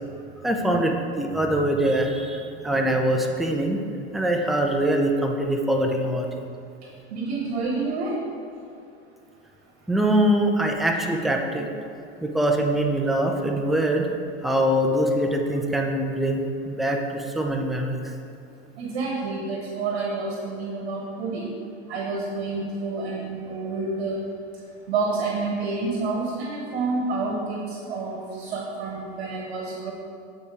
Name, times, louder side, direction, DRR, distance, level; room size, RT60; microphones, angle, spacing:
voice 1, 0.4-3.8 4.1-6.3 9.9-11.7 12.2-14.1 14.4-18.1, right 1 dB, ahead, 2 dB, 0.5 m, -23 dB
voice 2, 7.1-8.2 18.8-21.5 21.9-24.2 24.9-29.9, right 3 dB, 85° right, -1 dB, 1.2 m, -28 dB
8.7 x 4.2 x 4.8 m, 2.5 s
supercardioid pair, 110°, 32 cm